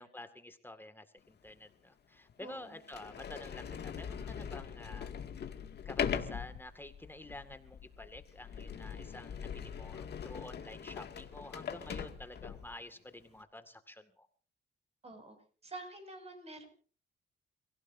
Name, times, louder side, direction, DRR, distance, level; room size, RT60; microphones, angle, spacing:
voice 1, 0.0-5.1 5.9-14.3, left 1 dB, 10° left, 8 dB, 2.1 m, -50 dB
Sliding door, 1.5-1.6 2.3-2.4 2.8-12.8, left 7 dB, 55° left, 2.2 m, -41 dB
voice 2, 2.4-2.8 15.0-15.4 15.6-16.6, right 2 dB, 30° right, 6 dB, 6.5 m, -48 dB
29.5 x 16.5 x 2.7 m, 0.42 s
cardioid pair, 90°, 20 cm